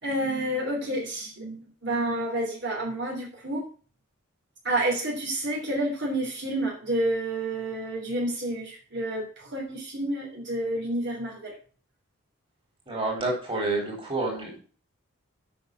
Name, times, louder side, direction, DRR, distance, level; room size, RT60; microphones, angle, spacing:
voice 1, 0.0-3.6 4.6-11.6, right 1 dB, 55° right, -1 dB, 3.3 m, -29 dB
voice 2, 12.9-14.6, right 2 dB, 25° right, -2 dB, 4.2 m, -29 dB
8.5 x 6.4 x 7.8 m, 0.40 s
head